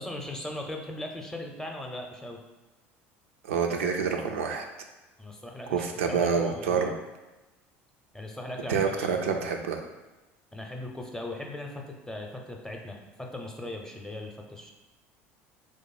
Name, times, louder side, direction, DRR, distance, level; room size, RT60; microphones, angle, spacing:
voice 1, 0.0-2.4 5.2-6.9 8.1-9.3 10.5-14.7, left 1 dB, 10° left, 1 dB, 0.6 m, -39 dB
voice 2, 3.4-4.6 5.7-6.9 8.7-9.8, right 6 dB, 90° right, 3 dB, 0.4 m, -27 dB
3.0 x 2.0 x 4.1 m, 1.1 s
hypercardioid pair, 80°, 7 cm